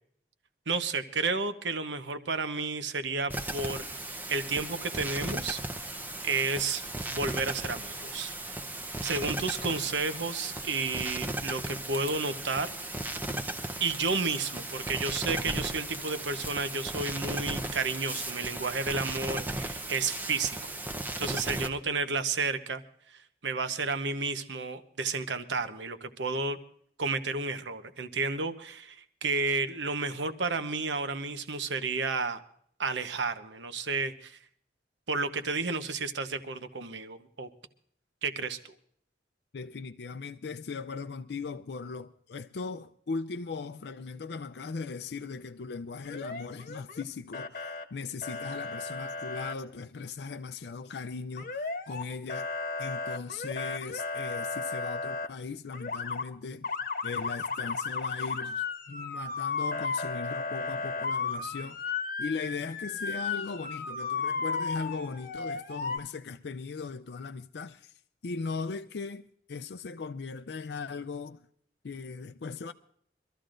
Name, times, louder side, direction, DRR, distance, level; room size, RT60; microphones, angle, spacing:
voice 1, 0.7-5.6 6.2-8.3 9.0-13.0 13.8-20.7 21.2-22.8 23.1-26.6 27.0-32.4 32.8-34.4 35.1-37.5 38.2-38.7, right 4 dB, 85° right, 1.0 m, -32 dB
sound 1, 3.3-21.7, right 1 dB, 10° right, 0.7 m, -36 dB
voice 2, 39.5-56.7 57.0-61.8 62.2-67.9 68.2-71.4 71.8-72.7, left 4 dB, 70° left, 0.5 m, -38 dB
Motor vehicle (road) / Siren, 46.0-47.0 47.3-47.8 48.2-49.5 51.4-52.0 52.3-55.3 55.7-56.2 56.6-66.0, left 4 dB, 50° left, 1.1 m, -34 dB
24.5 x 13.5 x 2.5 m
head